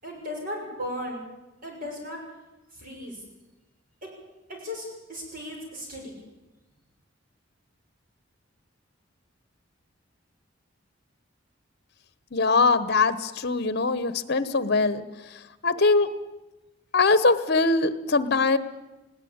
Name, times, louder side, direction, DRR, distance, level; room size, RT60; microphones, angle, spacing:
voice 1, 0.0-1.2 1.6-2.2 2.7-3.2 4.0-4.1 4.5-6.2, left 1 dB, 45° right, 0 dB, 6.6 m, -36 dB
voice 2, 12.3-15.0 15.6-16.1 16.9-18.6, left 3 dB, 55° left, 15 dB, 1.1 m, -22 dB
19.5 x 17.0 x 8.8 m, 1.0 s
head